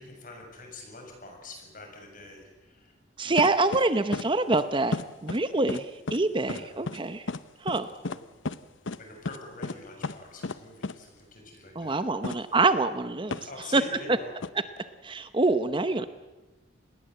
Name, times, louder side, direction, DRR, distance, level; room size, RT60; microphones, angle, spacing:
voice 1, 0.0-2.9 3.3-3.5 6.4-6.7 8.0-8.2 9.0-12.1 13.5-14.3, left 2 dB, 45° left, 2 dB, 7.2 m, -45 dB
voice 2, 3.2-7.2 7.6-7.9 11.8-13.4 13.7-13.8 15.1-16.1, right 3 dB, 25° right, 11 dB, 0.9 m, -25 dB
sound 1, 3.4-3.8 4.1-4.3 4.5-4.6 4.9-5.4 5.7-5.8 6.1-6.2 6.5-6.6 6.9-7.0 7.3-7.4 7.7-7.8 8.0-8.2 8.5-8.6 8.9-9.0 9.3-9.4 9.6-9.8 10.0-10.2 10.4-10.6 10.8-10.9 12.2-12.4 13.3-13.5 14.4-14.5, left 3 dB, 85° left, 0.9 m, -32 dB
27.5 x 20.5 x 7.9 m, 1.1 s
head